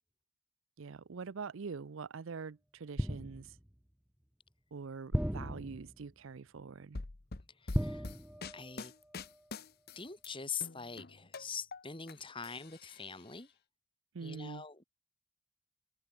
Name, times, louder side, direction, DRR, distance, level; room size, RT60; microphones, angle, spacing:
voice 1, 0.8-3.5 4.7-7.0 14.1-14.6, right 5 dB, 60° right, 0.5 m, -44 dB
sound 1, 3.0-3.7 5.1-6.1 7.7-8.8 9.1-9.3, equal, 5° right, 0.7 m, -36 dB
sound 2, 6.9-10.3 10.6-12.1 12.4-13.3, left 3 dB, 45° left, 1.0 m, -45 dB
voice 2, 7.6-8.0 8.5-8.9 10.0-13.5 14.2-14.9, left 6 dB, 25° left, 2.4 m, -43 dB
open air
head